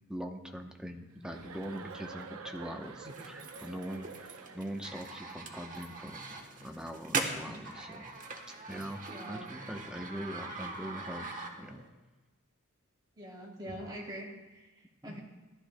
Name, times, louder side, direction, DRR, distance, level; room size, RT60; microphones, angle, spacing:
voice 1, 0.1-6.2 6.6-8.1 8.7-9.0 9.3-11.8 13.7-13.8 15.0-15.1, equal, 5° right, 3 dB, 0.8 m, -42 dB
Chuckle chortle, 1.2-5.0, right 5 dB, 80° right, 0.7 m, -48 dB
sound 1, 3.0-11.9, right 3 dB, 40° right, 1.1 m, -41 dB
voice 2, 9.0-9.5 13.1-15.2, right 1 dB, 20° right, -3 dB, 2.8 m, -44 dB
14.5 x 12.0 x 2.2 m, 1.2 s
head